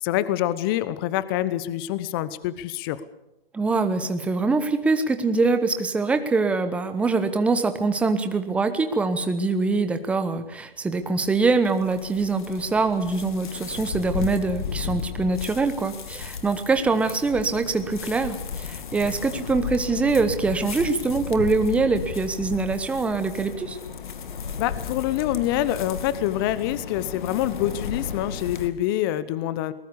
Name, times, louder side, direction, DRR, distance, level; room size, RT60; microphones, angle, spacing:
voice 1, 0.0-3.0 24.6-29.7, left 13 dB, 25° left, 16 dB, 1.0 m, -26 dB
voice 2, 3.5-23.8, right 3 dB, 5° right, 9 dB, 1.0 m, -24 dB
sound 1, 11.0-28.7, left 6 dB, 55° left, 2.4 m, -35 dB
22.5 x 20.5 x 7.0 m, 0.90 s
figure-of-eight pair, 140°, 30 cm